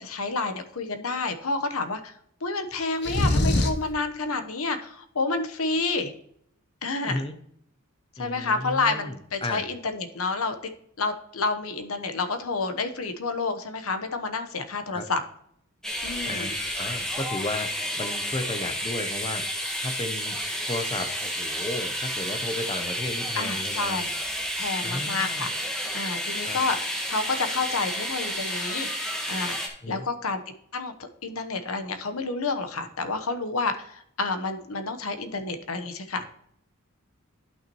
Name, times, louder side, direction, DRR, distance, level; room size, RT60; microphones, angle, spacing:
voice 1, 0.0-2.1 2.4-6.1 6.8-7.3 8.2-10.7 11.0-15.2 16.0-16.5 23.3-24.1 24.6-25.7 25.9-26.8 27.1-29.6 29.9-30.4 30.7-30.9 31.2-36.3, left 3 dB, 80° left, 8 dB, 1.0 m, -29 dB
sound 1, 3.0-3.9, left 1 dB, 50° left, 0.9 m, -22 dB
voice 2, 7.0-7.3 8.2-9.6 14.9-15.1 16.3-19.4 19.8-20.4 20.6-24.0 24.8-25.5 26.4-26.6 29.8-30.1, left 2 dB, 25° left, 8 dB, 0.6 m, -34 dB
sound 2, 15.8-29.7, equal, 5° left, 1.3 m, -31 dB
11.5 x 5.8 x 3.0 m, 0.69 s
head